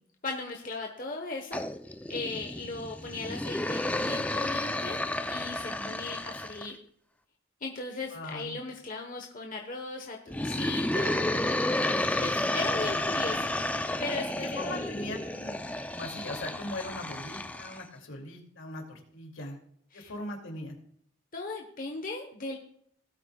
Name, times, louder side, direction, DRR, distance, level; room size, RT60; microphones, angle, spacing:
voice 1, 0.2-1.6 2.1-5.0 5.3-6.8 7.6-11.2 12.2-13.6 14.0-14.9 19.9-20.1 21.3-22.6, left 3 dB, 40° left, 2 dB, 1.1 m, -37 dB
sound 1, 1.5-6.7 10.3-17.8, left 1 dB, 5° left, 0.4 m, -31 dB
voice 2, 5.6-6.0 8.1-8.6 14.6-19.6 19.9-20.7, left 1 dB, 75° left, 2 dB, 2.5 m, -40 dB
18.0 x 8.5 x 2.3 m, 0.66 s
head